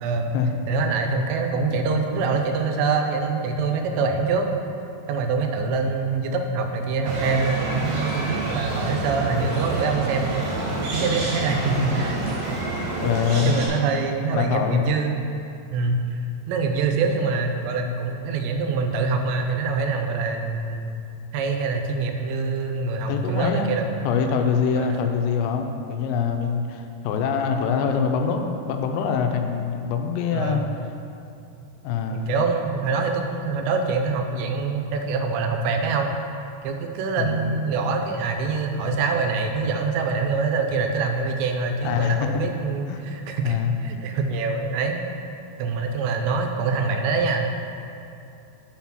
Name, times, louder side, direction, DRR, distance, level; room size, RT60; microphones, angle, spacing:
voice 1, 0.0-0.3 0.7-4.5 5.1-10.5 10.8-12.2 13.5-15.2 15.7-16.2 16.5-20.9 21.3-23.9 24.8-25.0 30.3-30.6 32.1-36.1 36.6-45.0 45.6-47.5, right 4 dB, 85° right, 4 dB, 2.9 m, -25 dB
sound 1, 7.0-13.7, right 2 dB, 60° right, 2.7 m, -28 dB
voice 2, 13.0-13.6 14.3-14.9 23.1-23.7 24.0-30.6 31.8-32.3 37.2-37.5 41.8-42.4 42.9-43.0 43.4-43.8, left 6 dB, 85° left, 5 dB, 2.8 m, -24 dB
6.2 x 5.8 x 6.0 m, 2.7 s
omnidirectional pair, 4.9 m